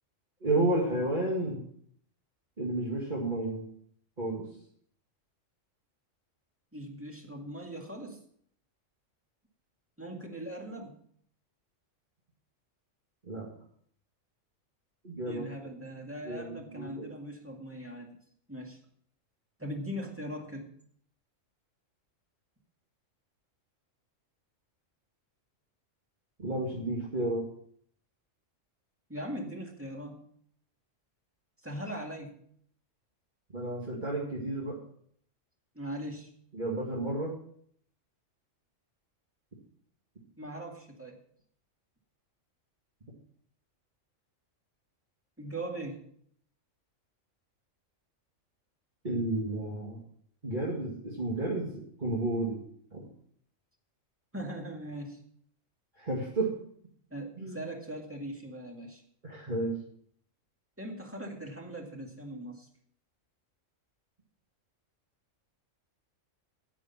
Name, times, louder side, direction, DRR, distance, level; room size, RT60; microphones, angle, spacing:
voice 1, 0.4-1.7 2.6-3.6 4.2-4.5 13.2-13.5 15.0-15.5 16.2-17.1 26.4-27.5 33.5-34.8 36.5-37.3 49.0-50.0 50.4-52.6 52.9-53.1 56.0-56.5 57.4-57.6 59.2-59.7, right 2 dB, 35° right, -4 dB, 2.2 m, -31 dB
voice 2, 6.7-8.2 10.0-11.0 15.2-18.2 18.5-18.8 19.6-20.7 29.1-30.3 31.6-32.4 35.7-36.3 40.4-41.2 45.4-46.0 54.3-55.2 57.1-59.0 60.8-62.7, right 1 dB, 10° right, 1 dB, 2.0 m, -40 dB
9.8 x 9.4 x 5.8 m, 0.63 s
omnidirectional pair, 1.3 m